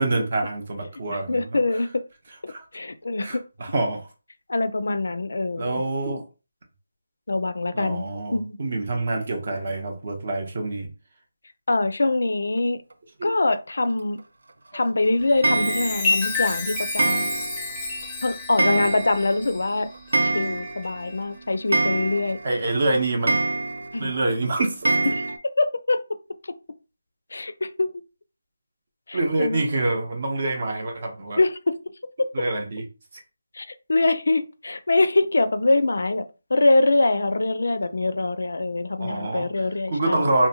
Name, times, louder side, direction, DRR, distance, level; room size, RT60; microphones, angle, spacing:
voice 1, 0.0-1.5 2.5-2.6 3.2-4.1 5.6-6.2 7.7-10.9 13.2-13.3 18.7-18.8 22.4-23.4 24.0-25.1 29.1-31.4 32.3-32.8 39.0-39.5 39.9-40.5, right 2 dB, 40° right, 0.7 m, -26 dB
voice 2, 1.1-2.0 2.4-3.4 4.5-5.8 7.3-8.1 8.3-8.6 11.7-12.8 13.2-14.2 14.7-17.3 18.2-19.9 20.2-22.4 23.9-24.1 25.2-25.3 25.6-26.0 27.3-28.0 29.1-29.6 31.4-31.8 32.2-32.3 33.5-36.3 36.5-40.3, left 2 dB, 70° left, 0.4 m, -24 dB
Chime, 15.2-21.2 21.7-22.0, left 3 dB, 10° left, 0.5 m, -30 dB
Clock, 15.4-16.2 17.0-17.7 18.0-18.1 18.6-19.3 19.6-19.7 19.9-20.9 21.2-21.3 21.7-22.5 23.3-24.0 24.8-25.4, right 3 dB, 80° right, 0.4 m, -24 dB
2.7 x 2.1 x 2.8 m
figure-of-eight pair, 175°, 0 cm